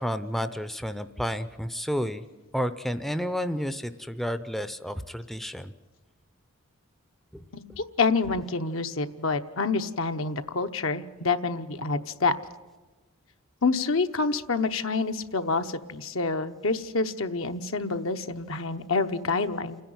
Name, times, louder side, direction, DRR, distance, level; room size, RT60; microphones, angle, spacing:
voice 1, 0.0-2.2 2.5-5.7 7.3-7.4, equal, ahead, 11 dB, 0.6 m, -31 dB
voice 2, 7.5-12.4 13.6-19.8, left 4 dB, 70° left, 7 dB, 1.0 m, -27 dB
29.0 x 10.5 x 9.5 m, 1.2 s
head